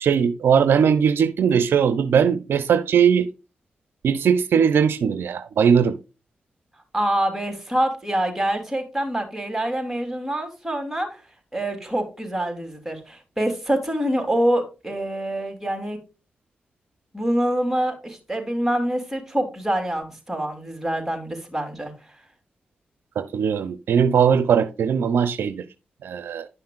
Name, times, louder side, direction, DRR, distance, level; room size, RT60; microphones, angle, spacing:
voice 1, 0.0-3.3 4.0-6.0 23.2-25.6 26.0-26.5, right 7 dB, 80° right, 0.6 m, -19 dB
voice 2, 6.9-11.1 11.5-16.0 17.1-21.9, right 1 dB, 10° right, 3.4 m, -25 dB
11.0 x 5.7 x 2.5 m
cardioid pair, 50°, 4 cm